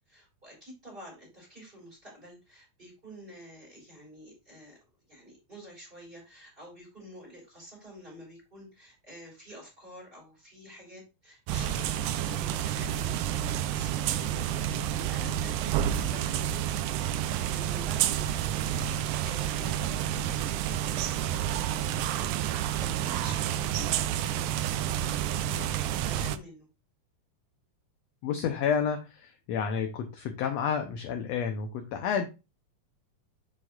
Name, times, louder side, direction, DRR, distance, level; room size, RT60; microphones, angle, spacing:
voice 1, 0.1-4.8 5.1-16.8 17.1-18.6 18.9-24.6 24.9-26.7, equal, 15° right, -2 dB, 3.8 m, -49 dB
sound 1, 11.5-26.4, right 11 dB, 80° right, 2.0 m, -29 dB
voice 2, 28.2-32.3, left 7 dB, 75° left, 5 dB, 1.6 m, -30 dB
7.5 x 6.0 x 2.4 m, 0.28 s
omnidirectional pair, 3.7 m